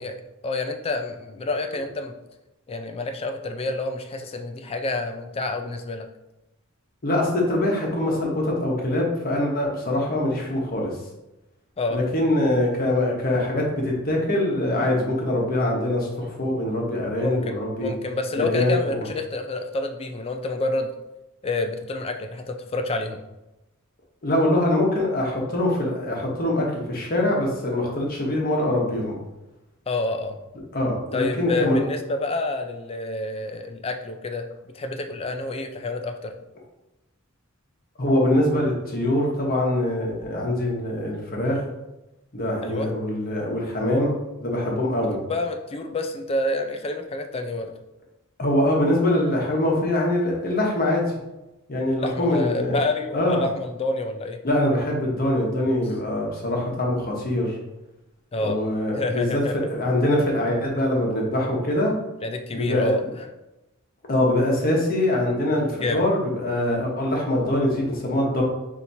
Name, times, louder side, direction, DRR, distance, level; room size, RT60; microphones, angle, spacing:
voice 1, 0.0-2.1 2.7-6.1 11.8-12.0 17.2-20.9 21.4-23.2 29.9-30.4 31.1-34.4 34.7-36.3 42.6-42.9 45.2-47.7 52.0-54.4 58.3-58.6 58.9-59.7 62.2-63.3 65.8-66.1, left 2 dB, 25° left, 7 dB, 0.4 m, -28 dB
voice 2, 7.0-10.9 11.9-17.9 18.4-19.1 24.2-29.1 30.7-31.8 38.0-41.6 42.3-45.2 48.4-51.0 51.7-52.8 53.1-53.4 54.4-57.6 58.4-59.4 59.7-62.0 62.5-62.9 64.1-68.4, left 1 dB, 45° left, -1 dB, 1.0 m, -23 dB
5.7 x 2.8 x 2.7 m, 0.98 s
head